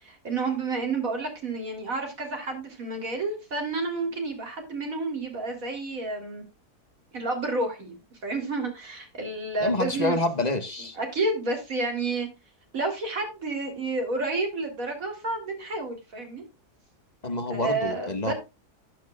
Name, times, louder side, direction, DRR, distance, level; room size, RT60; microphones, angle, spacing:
voice 1, 0.0-6.4 7.1-7.9 8.2-10.2 11.0-12.3 12.7-16.4 17.5-18.3, right 3 dB, 60° right, 4 dB, 3.7 m, -30 dB
voice 2, 9.6-11.0 17.2-18.3, left 2 dB, 25° left, 8 dB, 1.5 m, -27 dB
14.0 x 9.3 x 2.3 m, 0.27 s
omnidirectional pair, 1.7 m